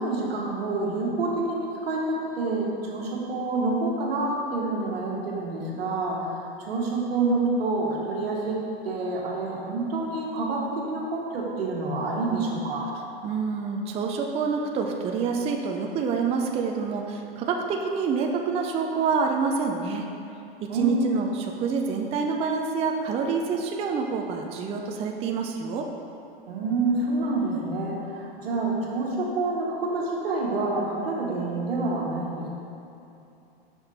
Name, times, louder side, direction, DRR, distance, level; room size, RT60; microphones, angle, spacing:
voice 1, 0.0-8.6 8.8-12.9 20.7-21.1 26.5-32.5, right 3 dB, 80° right, -3 dB, 1.4 m, -27 dB
voice 2, 13.2-20.1 20.6-25.9, right 5 dB, 20° right, 2 dB, 0.4 m, -27 dB
5.8 x 5.1 x 4.1 m, 2.8 s
hypercardioid pair, 110°, 30 cm